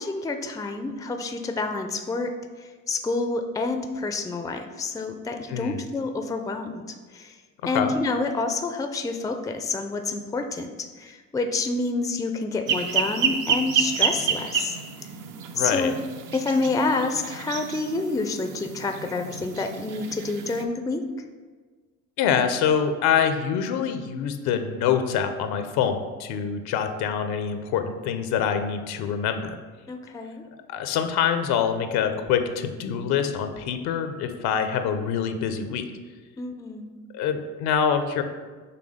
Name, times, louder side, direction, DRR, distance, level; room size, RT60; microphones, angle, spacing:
voice 1, 0.0-2.3 2.6-7.3 7.6-14.8 15.6-15.9 16.3-21.0 29.9-30.4 36.4-37.0, left 3 dB, 10° left, 6 dB, 0.5 m, -28 dB
voice 2, 5.5-5.8 7.7-7.9 15.5-15.9 22.2-29.6 30.7-35.9 37.1-38.2, left 7 dB, 65° left, 8 dB, 0.7 m, -25 dB
sound 1, 12.7-20.6, right 6 dB, 50° right, 0.7 m, -29 dB
5.9 x 3.4 x 5.0 m, 1.4 s
hypercardioid pair, 65°, 41 cm